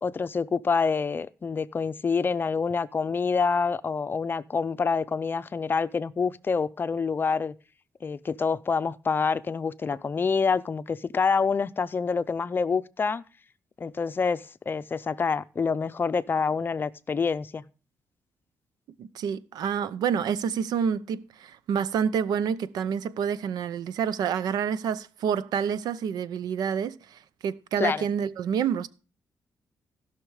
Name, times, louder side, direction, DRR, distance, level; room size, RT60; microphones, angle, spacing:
voice 1, 0.0-7.5 8.0-13.2 13.8-17.7 27.8-28.1, left 5 dB, 30° left, 0.5 m, -27 dB
voice 2, 19.0-28.9, right 7 dB, 90° right, 0.7 m, -28 dB
16.5 x 5.9 x 4.8 m
cardioid pair, 125°, 7 cm